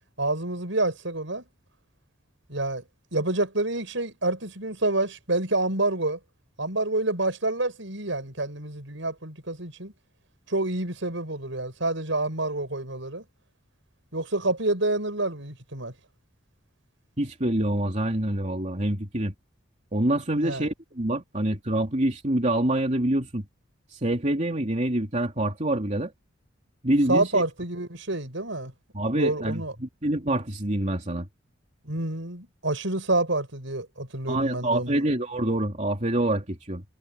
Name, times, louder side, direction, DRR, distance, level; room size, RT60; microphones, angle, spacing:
voice 1, 0.2-1.4 2.5-2.8 3.1-6.2 6.6-9.9 10.5-13.2 14.1-15.9 20.3-20.7 27.1-28.7 29.1-29.7 31.8-35.1, right 2 dB, 70° right, 7.0 m, -28 dB
voice 2, 17.2-19.3 19.9-23.4 23.9-26.1 26.8-27.4 28.9-31.3 34.3-36.8, right 1 dB, 35° right, 3.1 m, -26 dB
head